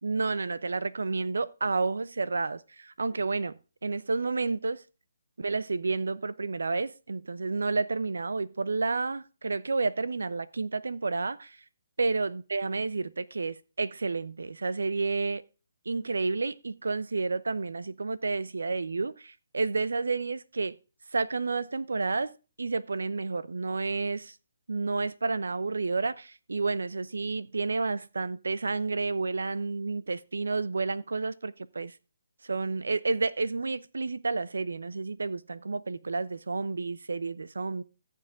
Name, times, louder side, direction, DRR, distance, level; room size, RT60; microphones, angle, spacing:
voice 1, 0.0-4.8 5.4-11.6 12.0-15.4 15.9-20.8 21.1-22.3 22.6-24.3 24.7-31.9 32.4-37.8, right 3 dB, 85° right, 0.7 m, -30 dB
14.0 x 7.0 x 3.7 m
hypercardioid pair, 160°, 0 cm